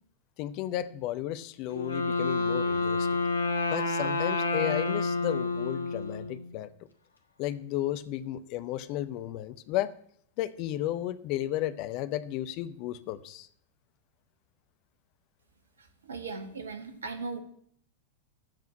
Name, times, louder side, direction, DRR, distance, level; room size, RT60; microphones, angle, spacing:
voice 1, 0.4-3.1 3.7-6.7 7.4-9.9 10.4-13.5, left 13 dB, 45° left, 12 dB, 0.8 m, -33 dB
Wind instrument woodwind instrument, 1.7-6.6, left 3 dB, 80° left, 1.4 m, -29 dB
voice 2, 15.8-17.4, right 4 dB, 70° right, 8 dB, 1.7 m, -38 dB
13.5 x 4.8 x 8.8 m, 0.64 s
figure-of-eight pair, 90°, 0 cm